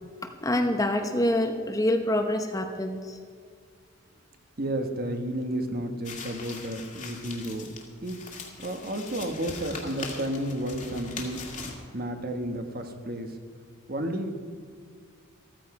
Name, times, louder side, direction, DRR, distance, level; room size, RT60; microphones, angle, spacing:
voice 1, 0.2-3.2, left 1 dB, 15° left, 5 dB, 0.9 m, -26 dB
voice 2, 4.6-7.7 8.0-11.4 11.9-13.4 13.9-14.3, right 1 dB, 45° right, 6 dB, 1.2 m, -32 dB
sound 1, 6.0-11.7, left 4 dB, 35° left, 2.0 m, -41 dB
14.5 x 14.0 x 4.9 m, 2.1 s
head